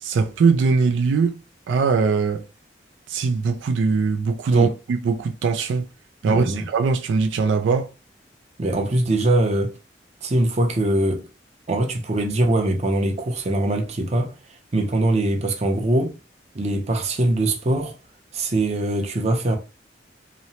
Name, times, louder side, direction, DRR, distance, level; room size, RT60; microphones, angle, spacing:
voice 1, 0.0-1.4 1.7-2.4 3.1-5.9 6.2-7.9, right 5 dB, 90° right, 0.3 m, -21 dB
voice 2, 6.2-6.7 8.6-9.7 10.2-11.3 11.7-14.3 14.7-16.1 16.5-17.9 18.3-19.6, right 1 dB, 35° right, 0.5 m, -22 dB
2.8 x 2.0 x 2.7 m
head